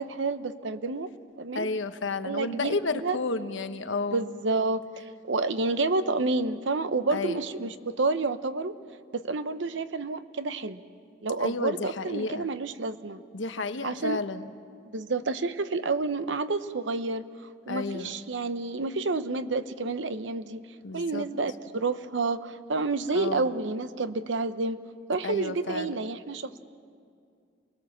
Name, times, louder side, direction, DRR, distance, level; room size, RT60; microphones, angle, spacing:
voice 1, 0.0-1.7 2.2-3.2 4.1-8.7 9.1-10.8 11.2-13.2 13.8-14.2 14.9-20.6 20.9-24.8 25.1-26.6, right 3 dB, 75° right, 12 dB, 0.8 m, -29 dB
voice 2, 1.5-4.2 7.1-7.4 11.4-12.5 13.3-14.5 17.7-18.1 20.8-21.3 23.1-23.5 25.2-26.0, left 3 dB, 80° left, 9 dB, 1.0 m, -31 dB
28.0 x 19.5 x 7.3 m, 2.3 s
head